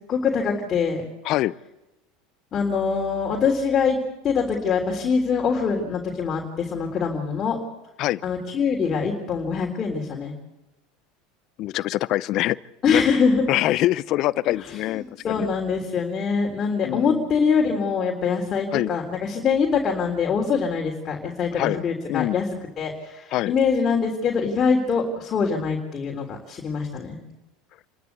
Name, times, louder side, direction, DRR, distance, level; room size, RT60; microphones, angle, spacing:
voice 1, 0.1-1.0 2.5-4.0 4.2-7.6 8.2-10.3 12.8-13.5 14.6-22.5 22.8-27.2, left 5 dB, 35° left, 1 dB, 3.6 m, -24 dB
voice 2, 11.6-12.6 12.9-13.0 13.5-15.5 16.8-17.2 18.7-18.9 21.6-21.8 22.1-22.4 23.3-23.5, left 15 dB, 55° left, 19 dB, 0.6 m, -24 dB
28.5 x 13.0 x 8.3 m, 1.0 s
supercardioid pair, 105°, 0 cm